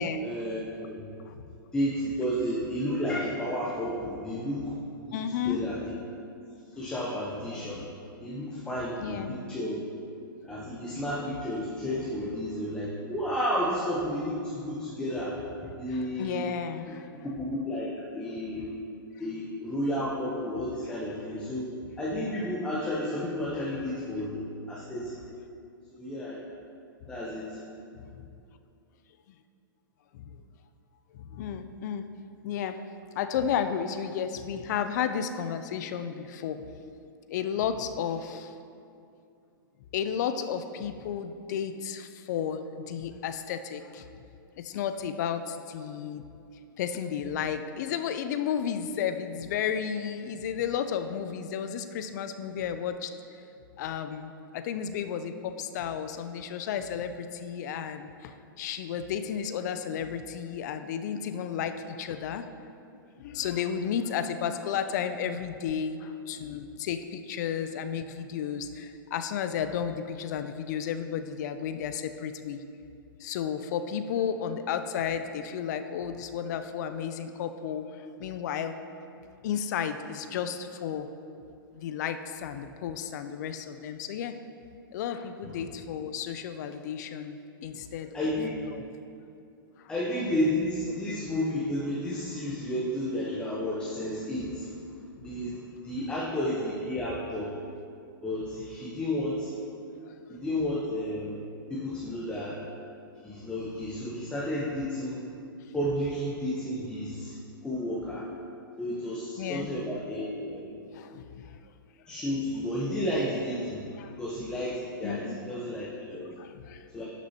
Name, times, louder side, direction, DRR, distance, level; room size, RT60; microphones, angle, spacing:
voice 1, 0.2-1.1 1.7-5.8 6.8-7.9 8.2-9.8 10.4-15.4 15.8-16.4 16.9-17.0 17.4-18.7 19.2-21.7 22.0-25.2 25.9-26.4 27.1-27.6 85.4-85.6 88.1-88.6 89.9-94.7 95.2-97.6 98.2-99.5 100.3-101.4 101.7-102.6 103.2-105.2 105.7-107.4 107.6-108.3 108.8-110.8 112.1-113.8 114.2-116.3 116.9-117.0, equal, 10° left, -6 dB, 0.9 m, -32 dB
voice 2, 5.1-5.6 9.0-9.4 15.9-17.1 23.5-23.7 30.3-30.4 31.2-32.0 32.4-32.8 33.2-36.6 37.3-38.5 39.9-44.1 44.6-46.2 46.8-53.4 53.8-62.5 63.2-72.6 73.2-78.8 79.4-81.1 81.7-84.3 84.9-88.8 89.8-89.9 98.4-98.6 100.0-100.1 109.4-109.7 110.9-111.6 114.0-114.1 115.0-115.4 116.4-116.8, left 8 dB, 50° left, 9 dB, 0.4 m, -33 dB
11.5 x 6.1 x 2.9 m, 2.5 s
hypercardioid pair, 140°, 12 cm